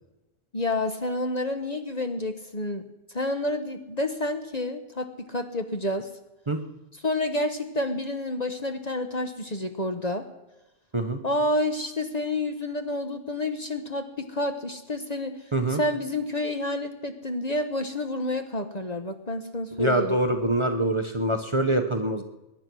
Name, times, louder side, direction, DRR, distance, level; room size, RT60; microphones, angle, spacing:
voice 1, 0.5-2.9 3.1-6.1 7.0-10.3 11.2-15.3 15.7-20.2, left 1 dB, 35° left, 7 dB, 1.1 m, -29 dB
voice 2, 19.8-22.2, right 1 dB, 25° right, 5 dB, 1.0 m, -24 dB
22.0 x 10.5 x 6.2 m, 0.98 s
omnidirectional pair, 1.3 m